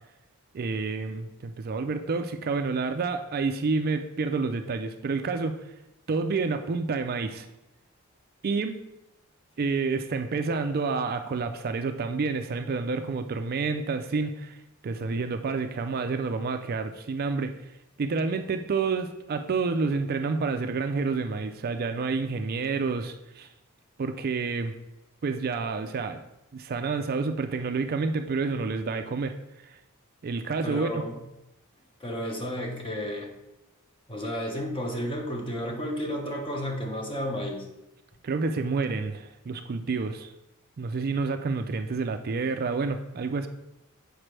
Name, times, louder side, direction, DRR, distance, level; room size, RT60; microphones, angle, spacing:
voice 1, 0.5-5.6 6.1-7.5 8.4-8.8 9.6-17.5 18.0-23.5 24.0-24.7 25.2-26.2 26.5-29.3 29.6-29.8 30.2-31.0 38.2-40.3 40.8-43.5, right 4 dB, 45° right, 8 dB, 0.4 m, -29 dB
voice 2, 30.6-31.2 32.0-33.3 34.1-37.7, equal, 25° left, 1 dB, 1.1 m, -32 dB
7.4 x 5.1 x 3.3 m, 0.91 s
head